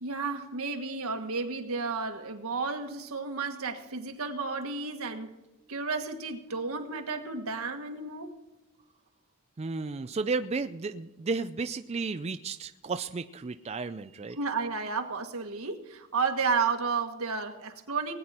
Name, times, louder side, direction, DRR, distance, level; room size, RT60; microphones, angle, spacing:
voice 1, 0.0-5.3 5.7-8.3 14.4-18.1, right 4 dB, 85° right, 5 dB, 1.7 m, -32 dB
voice 2, 9.6-14.4, right 4 dB, 30° right, 9 dB, 0.4 m, -33 dB
19.5 x 9.5 x 4.4 m, 1.1 s
head